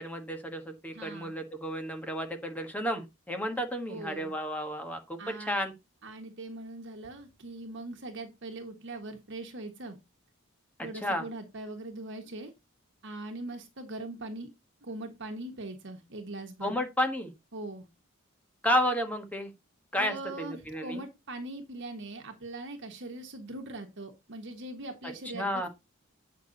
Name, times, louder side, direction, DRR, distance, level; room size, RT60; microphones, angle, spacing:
voice 1, 0.0-5.7 11.0-11.2 16.6-17.3 18.6-19.5 19.9-21.0 25.3-25.7, equal, 5° left, 1.5 m, -32 dB
voice 2, 0.9-1.4 3.5-3.6 3.9-4.3 5.2-5.7 6.0-10.0 10.8-12.5 13.0-14.5 14.8-16.8 17.5-17.9 20.0-25.7, right 2 dB, 60° right, 1.4 m, -41 dB
8.6 x 5.9 x 4.0 m
head